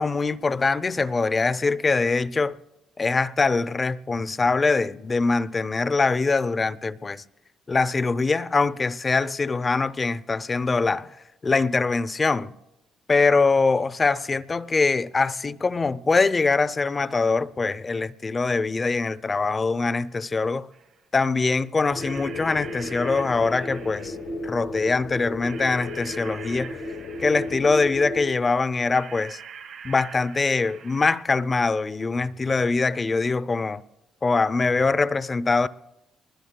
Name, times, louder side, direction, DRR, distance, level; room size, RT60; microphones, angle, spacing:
voice 1, 0.0-2.6 3.0-7.2 7.7-11.1 11.4-12.5 13.1-20.7 21.1-24.2 24.4-26.8 27.2-29.4 29.8-33.8 34.2-35.7, left 4 dB, 30° left, 0.5 m, -23 dB
sound 1, 20.7-20.9 22.0-24.3 25.4-27.9 28.9-31.2, right 7 dB, 70° right, 3.0 m, -44 dB
sound 2, 21.9-28.3, left 2 dB, 80° left, 1.1 m, -34 dB
24.0 x 20.5 x 2.2 m
cardioid pair, 90°, 0 cm